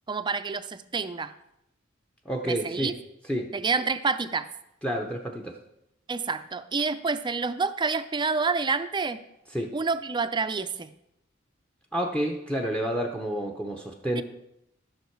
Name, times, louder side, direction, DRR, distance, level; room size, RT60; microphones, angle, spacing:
voice 1, 0.1-1.3 2.4-2.9 3.5-4.5 6.1-9.2 9.7-10.9 14.2-14.3, right 4 dB, 25° right, 12 dB, 0.4 m, -28 dB
voice 2, 2.2-2.9 3.2-3.5 4.8-5.6 9.5-9.7 11.9-14.2, equal, 5° left, 2 dB, 0.8 m, -29 dB
13.0 x 6.5 x 4.6 m, 0.83 s
head